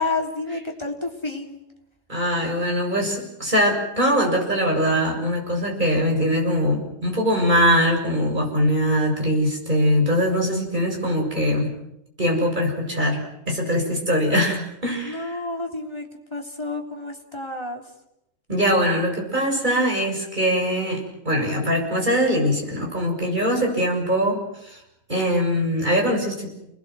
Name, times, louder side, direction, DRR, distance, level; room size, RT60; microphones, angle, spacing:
voice 1, 0.0-1.6 15.0-16.1 16.3-17.8, left 3 dB, 20° left, 1 dB, 3.6 m, -29 dB
voice 2, 2.1-11.7 12.2-15.4 18.5-21.0 21.3-24.8 25.1-26.5, equal, 35° right, 0 dB, 7.4 m, -22 dB
29.5 x 21.0 x 7.8 m, 0.83 s
omnidirectional pair, 1.3 m